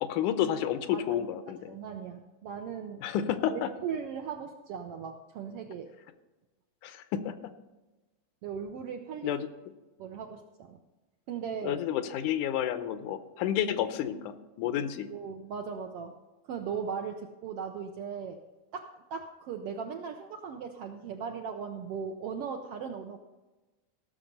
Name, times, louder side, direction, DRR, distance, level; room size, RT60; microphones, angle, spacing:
voice 1, 0.0-1.8 3.0-3.7 6.8-7.4 9.2-9.5 11.6-15.1, left 10 dB, 90° left, 10 dB, 2.3 m, -30 dB
voice 2, 0.9-3.0 3.5-5.9 8.4-9.4 10.0-10.8 11.3-11.8 15.1-16.1 16.4-18.4 18.7-23.2, right 6 dB, 75° right, 4 dB, 1.4 m, -38 dB
16.5 x 6.6 x 5.3 m, 1.1 s
omnidirectional pair, 3.5 m